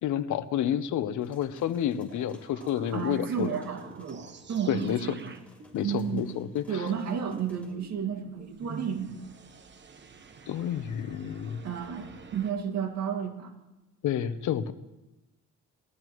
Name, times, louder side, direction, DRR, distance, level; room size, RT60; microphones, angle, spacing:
voice 1, 0.0-3.5 4.7-5.2 5.7-6.8 10.5-11.6 14.0-14.7, left 10 dB, 75° left, 13 dB, 0.8 m, -30 dB
sound 1, 1.2-7.7, left 1 dB, 5° left, 4.4 m, -57 dB
sound 2, 2.1-12.5, right 4 dB, 35° right, 1.1 m, -49 dB
voice 2, 2.9-4.2 4.5-5.3 5.8-6.3 6.7-9.2 11.6-13.5, right 7 dB, 60° right, 1 dB, 2.2 m, -32 dB
21.0 x 14.0 x 3.1 m, 1.0 s
cardioid pair, 90°, 30 cm